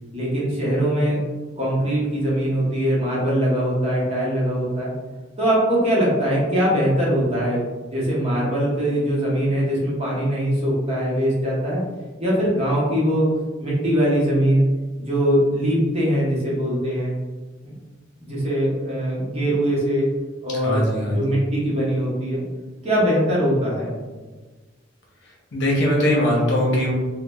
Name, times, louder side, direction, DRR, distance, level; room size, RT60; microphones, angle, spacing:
voice 1, 0.1-1.2 1.6-4.9 5.4-7.6 7.9-11.8 12.2-13.3 13.6-14.6 15.0-17.1 17.6-17.7 18.2-20.1 20.4-20.8 21.1-22.4 22.8-23.9, equal, 35° right, -6 dB, 0.8 m, -21 dB
voice 2, 20.6-21.3 25.5-26.9, equal, 65° left, -3 dB, 0.7 m, -20 dB
3.0 x 2.0 x 2.2 m, 1.3 s
head